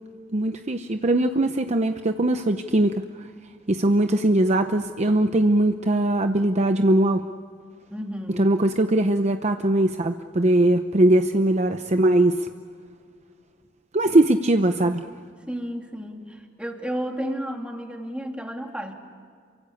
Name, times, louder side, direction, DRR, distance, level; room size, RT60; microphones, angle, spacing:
voice 1, 0.3-3.3 3.7-7.2 8.4-12.5 13.9-15.0, right 1 dB, 35° right, 7 dB, 0.8 m, -21 dB
voice 2, 7.9-8.5 15.5-18.9, equal, 5° right, 2 dB, 2.8 m, -32 dB
28.0 x 24.0 x 8.5 m, 2.1 s
head